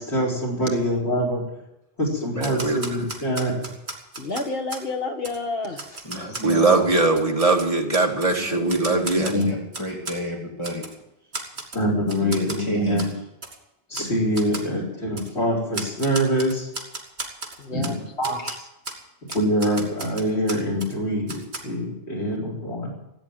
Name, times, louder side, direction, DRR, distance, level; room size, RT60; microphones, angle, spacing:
voice 1, 0.0-1.4 2.0-3.5 9.3-9.5 11.7-13.1 13.9-16.7 17.7-18.4 19.2-22.9, equal, 90° left, -2 dB, 4.7 m, -24 dB
voice 2, 2.3-3.1 6.1-9.3, right 3 dB, 35° right, 3 dB, 1.7 m, -21 dB
Typewriter, 2.4-4.9 5.2-5.4 5.8-6.6 7.0-8.3 8.7-10.2 10.6-10.9 11.3-11.8 12.1-12.6 13.0-13.1 13.4-13.6 13.9-14.1 14.3-14.7 15.2-15.3 15.7-17.9 18.2-18.5 18.8-19.0 19.3-20.9 21.3-21.6, right 2 dB, 75° right, 2.5 m, -35 dB
voice 3, 4.2-6.0 6.3-6.4 17.6-18.7, left 3 dB, 60° left, 4 dB, 2.0 m, -31 dB
voice 4, 6.0-6.8 8.3-10.8 11.4-11.5 12.2-13.1, equal, 25° left, -3 dB, 2.7 m, -32 dB
15.5 x 8.5 x 9.1 m, 0.87 s
omnidirectional pair, 1.1 m